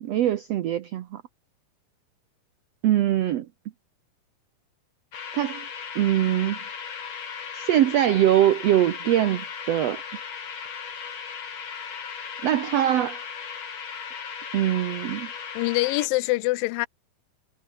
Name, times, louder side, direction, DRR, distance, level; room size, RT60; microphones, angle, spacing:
voice 1, 0.0-1.2 2.8-3.5 5.3-5.6 5.9-6.6 7.5-10.0 12.4-13.2 14.5-15.3, right 12 dB, 75° right, 1.4 m, -22 dB
sound 1, 5.1-16.1, left 6 dB, 50° left, 3.8 m, -37 dB
voice 2, 15.5-16.9, left 21 dB, 80° left, 2.2 m, -24 dB
omnidirectional pair, 4.2 m